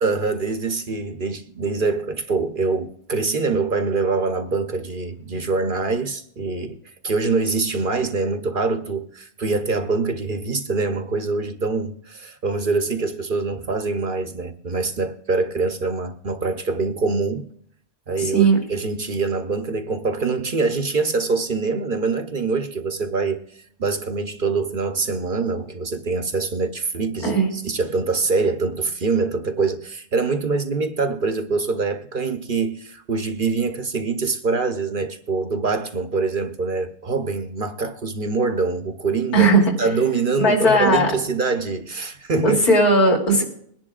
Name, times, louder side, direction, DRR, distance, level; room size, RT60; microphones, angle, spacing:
voice 1, 0.0-6.8 7.0-17.5 18.1-23.4 23.8-39.5 39.8-42.6, right 4 dB, 45° right, 0.8 m, -24 dB
voice 2, 18.2-18.6 27.2-27.5 39.3-39.7 40.4-41.1 42.4-43.4, right 2 dB, 75° left, 3.5 m, -17 dB
22.0 x 10.5 x 2.4 m
omnidirectional pair, 1.6 m